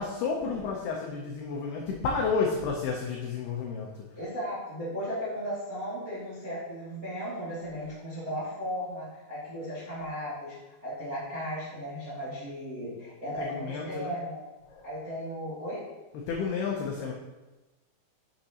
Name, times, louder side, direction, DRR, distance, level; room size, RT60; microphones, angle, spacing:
voice 1, 0.0-4.0 13.4-14.2 14.7-14.9 16.1-17.1, left 5 dB, 80° left, -1 dB, 2.3 m, -31 dB
voice 2, 4.1-10.6 10.8-14.4 14.8-15.9, equal, 35° right, -10 dB, 1.4 m, -36 dB
9.4 x 6.4 x 2.9 m, 1.1 s
omnidirectional pair, 5.4 m